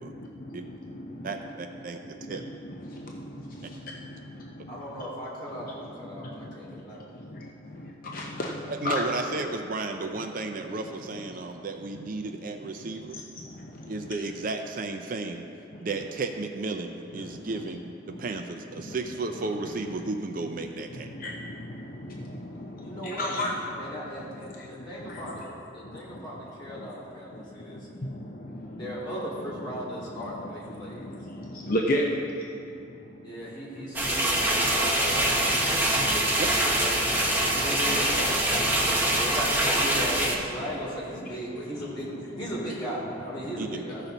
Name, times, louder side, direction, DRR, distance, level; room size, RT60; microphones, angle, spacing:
voice 1, 0.0-1.3 2.2-2.4 2.8-5.0 5.6-5.7 6.1-6.8 7.1-7.5 7.8-9.0 13.4-13.9 18.1-18.2 18.9-19.0 20.9-23.9 24.5-25.5 25.8-26.2 26.8-26.9 27.3-28.9 30.0-30.1 30.4-32.1 34.1-34.7 35.9-36.4 37.0-37.7 38.5-39.2, left 1 dB, 45° left, -1 dB, 0.6 m, -36 dB
voice 2, 1.2-2.4 3.6-3.7 8.7-13.2 13.9-15.5 15.8-21.1 36.4-36.5 43.6-43.7, right 3 dB, 45° right, 5 dB, 0.4 m, -33 dB
voice 3, 4.7-7.1 22.8-23.3 23.8-27.8 28.8-31.1 33.2-35.6 37.4-38.5 39.1-44.0, equal, 25° left, -8 dB, 2.5 m, -37 dB
sound 1, 33.9-40.4, right 1 dB, 10° right, 0.8 m, -24 dB
14.5 x 5.8 x 3.9 m, 2.7 s
head